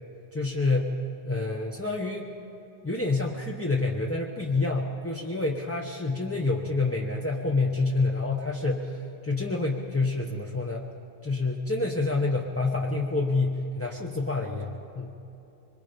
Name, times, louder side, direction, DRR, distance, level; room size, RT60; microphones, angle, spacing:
voice 1, 0.3-0.9 1.3-2.3 2.8-10.9 11.2-15.1, left 3 dB, 10° left, -2 dB, 0.7 m, -28 dB
24.5 x 22.0 x 5.2 m, 3.0 s
omnidirectional pair, 1.8 m